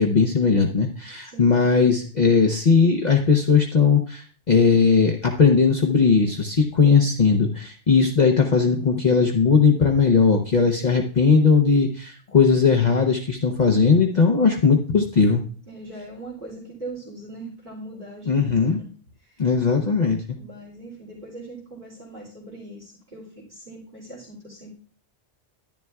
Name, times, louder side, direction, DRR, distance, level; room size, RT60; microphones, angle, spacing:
voice 1, 0.0-15.4 18.3-18.8 19.4-20.4, left 5 dB, 45° left, 2 dB, 0.8 m, -18 dB
voice 2, 15.7-18.5 18.8-18.9 19.2-19.4 20.4-24.7, right 2 dB, 45° right, -7 dB, 2.8 m, -40 dB
11.0 x 10.5 x 2.3 m, 0.43 s
omnidirectional pair, 1.2 m